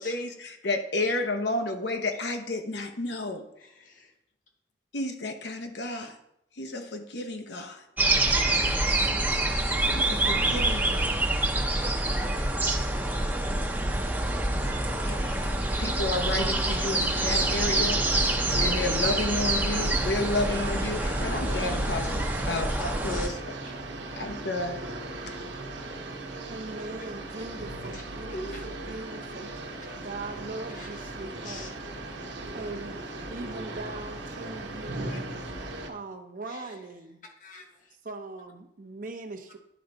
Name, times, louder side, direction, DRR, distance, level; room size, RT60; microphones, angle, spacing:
voice 1, 0.0-3.5 4.9-6.2 6.6-7.8 9.9-11.2 14.5-14.8 15.0-23.5 24.2-24.8, left 2 dB, 70° left, 5 dB, 0.9 m, -32 dB
voice 2, 3.6-4.1 15.2-15.4 16.7-16.8 19.3-19.4 21.1-21.2 21.5-22.2 23.1-23.3 27.9-28.0 28.3-28.7 30.7-31.2 31.4-31.7 35.1-35.2 36.5-36.7 37.4-37.9, left 1 dB, 45° left, 3 dB, 1.2 m, -43 dB
sound 1, 8.0-23.3, right 2 dB, 10° right, 0.7 m, -26 dB
sound 2, 17.1-35.9, right 2 dB, 85° right, 1.1 m, -38 dB
voice 3, 26.5-29.5 30.0-31.8 32.5-33.0 33.3-35.3 35.9-37.2 38.0-39.6, right 2 dB, 50° right, 5 dB, 0.8 m, -40 dB
10.0 x 4.6 x 3.8 m, 0.79 s
head